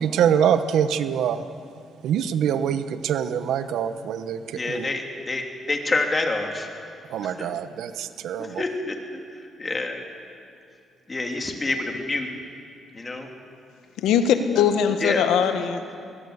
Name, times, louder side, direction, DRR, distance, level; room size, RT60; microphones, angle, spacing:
voice 1, 0.0-1.4 2.0-4.4 4.7-4.8 7.1-8.6, right 8 dB, 80° right, 11 dB, 1.0 m, -24 dB
voice 2, 4.5-6.7 7.2-7.5 8.4-10.0 11.1-12.3 12.9-13.3 15.0-15.2, left 2 dB, 25° left, 2 dB, 3.2 m, -28 dB
voice 3, 14.0-15.9, left 8 dB, 90° left, 7 dB, 1.5 m, -21 dB
22.0 x 19.5 x 8.2 m, 2.4 s
cardioid pair, 90°, 0 cm